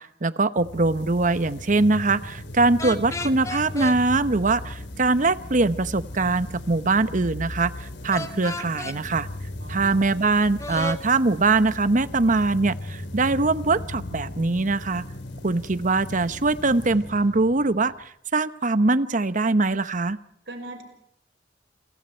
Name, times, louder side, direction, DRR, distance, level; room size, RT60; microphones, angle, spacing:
voice 1, 0.0-9.3 9.7-15.0 15.4-17.9 18.3-20.2, right 3 dB, 45° right, 14 dB, 1.0 m, -22 dB
sound 1, 0.6-18.1, left 1 dB, 75° left, 4.2 m, -37 dB
sound 2, 2.8-4.0 8.1-9.0 10.6-11.0, left 2 dB, 15° left, 1.6 m, -32 dB
voice 2, 9.6-10.0 20.5-20.8, right 1 dB, 70° right, 6 dB, 5.9 m, -39 dB
28.0 x 23.0 x 4.5 m, 0.72 s
head